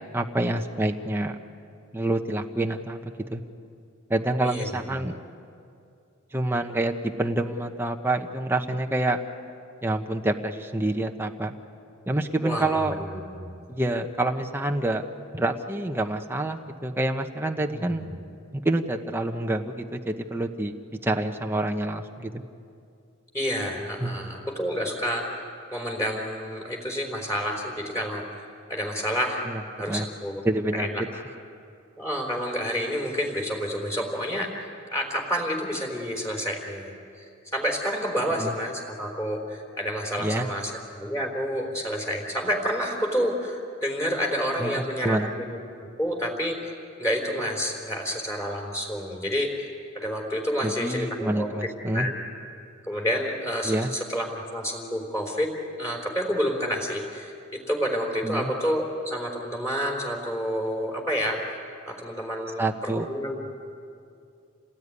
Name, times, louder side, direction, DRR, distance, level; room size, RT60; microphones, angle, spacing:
voice 1, 0.1-1.4 1.9-3.4 4.1-5.2 6.3-9.2 9.8-11.5 12.1-12.9 13.7-15.0 15.3-18.0 18.5-20.7 21.0-22.4 24.0-24.1 29.5-29.6 29.9-30.1 30.4-30.9 38.4-38.5 40.2-40.5 44.6-45.3 50.6-52.1 53.6-53.9 58.2-58.5 62.6-63.1, right 1 dB, 10° right, 3 dB, 1.0 m, -27 dB
voice 2, 12.4-13.5 17.7-18.0 23.3-29.4 29.8-30.4 30.7-31.0 32.0-34.5 34.9-37.3 37.5-45.6 46.0-46.7 47.0-49.7 49.9-52.2 52.9-55.5 55.8-61.6 61.9-62.6 63.0-63.4, equal, 15° left, 0 dB, 3.8 m, -29 dB
28.5 x 19.0 x 9.7 m, 2.5 s
head